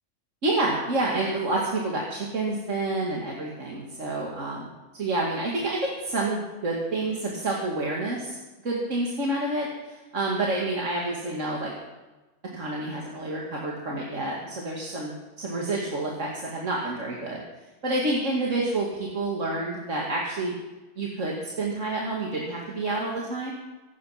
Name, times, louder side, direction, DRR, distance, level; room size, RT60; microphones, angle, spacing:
voice 1, 0.4-8.4 8.6-11.7 12.5-17.4 17.8-20.6 21.0-23.5, right 2 dB, 85° right, -3 dB, 2.6 m, -28 dB
25.0 x 9.4 x 5.9 m, 1.1 s
omnidirectional pair, 1.3 m